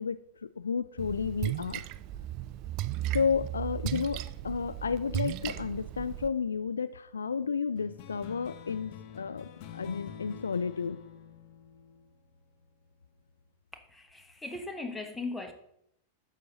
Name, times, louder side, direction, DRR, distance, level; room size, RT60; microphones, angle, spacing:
voice 1, 0.0-1.8 3.1-11.0, left 6 dB, 70° left, 0.3 m, -32 dB
Splash splatter, 1.0-6.3, right 14 dB, 40° right, 0.4 m, -35 dB
sound 1, 7.8-12.7, left 9 dB, 45° left, 0.8 m, -47 dB
voice 2, 13.7-15.5, left 3 dB, 10° left, 1.3 m, -38 dB
11.5 x 7.3 x 3.9 m
figure-of-eight pair, 90°, 0 cm